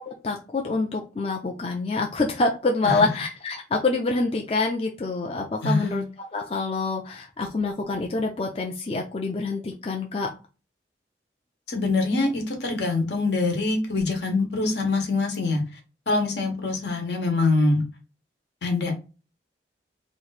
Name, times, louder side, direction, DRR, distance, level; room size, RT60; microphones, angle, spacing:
voice 1, 0.0-6.0 6.3-10.3, left 3 dB, 35° left, 1 dB, 0.4 m, -26 dB
voice 2, 5.6-6.1 11.7-15.6 16.1-17.8 18.6-18.9, left 3 dB, 75° left, 2 dB, 1.2 m, -24 dB
3.0 x 2.6 x 4.0 m, 0.32 s
head